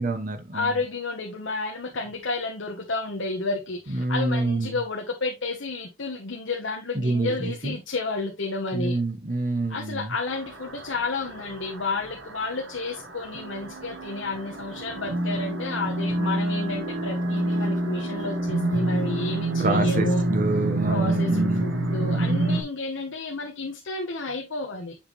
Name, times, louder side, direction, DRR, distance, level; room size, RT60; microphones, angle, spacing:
voice 1, 0.0-0.7 3.9-4.8 6.9-7.8 8.7-10.1 19.6-21.7, right 2 dB, 40° right, 1.3 m, -27 dB
voice 2, 0.5-9.0 9.7-20.2 20.9-25.0, left 3 dB, 75° left, 1.1 m, -31 dB
sound 1, 10.3-22.6, right 1 dB, 65° right, 1.7 m, -27 dB
7.2 x 5.1 x 3.1 m
head